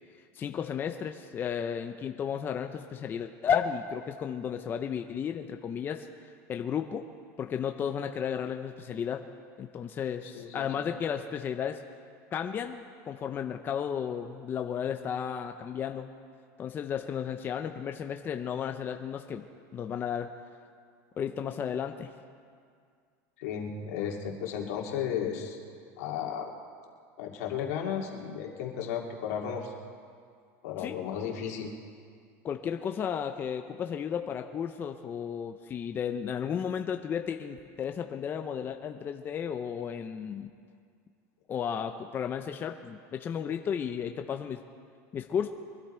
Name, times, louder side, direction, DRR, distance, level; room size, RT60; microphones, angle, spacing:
voice 1, 0.3-6.1 6.5-7.1 7.4-9.3 9.6-11.8 12.3-16.1 16.6-19.5 19.7-20.3 21.2-22.1 30.8-31.1 32.4-40.5 41.5-44.6 45.1-45.5, left 8 dB, 25° left, 6 dB, 0.6 m, -33 dB
voice 2, 10.2-10.7 23.4-25.6 26.0-26.5 27.2-29.7 30.6-31.7, left 8 dB, 80° left, 0 dB, 2.3 m, -34 dB
23.0 x 12.0 x 4.4 m, 2.1 s
supercardioid pair, 145°, 8 cm